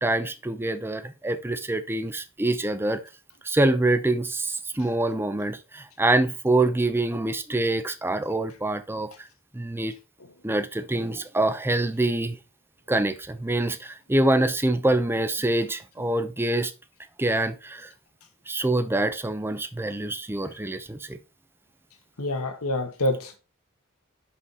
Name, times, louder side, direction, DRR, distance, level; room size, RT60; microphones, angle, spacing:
voice 1, 0.0-3.0 3.4-9.1 9.5-9.9 10.4-12.4 12.9-16.7 17.2-17.9 18.5-21.2, right 2 dB, 10° right, 0.6 m, -25 dB
voice 2, 22.2-23.4, left 1 dB, 85° left, 1.5 m, -27 dB
5.7 x 5.7 x 4.0 m
head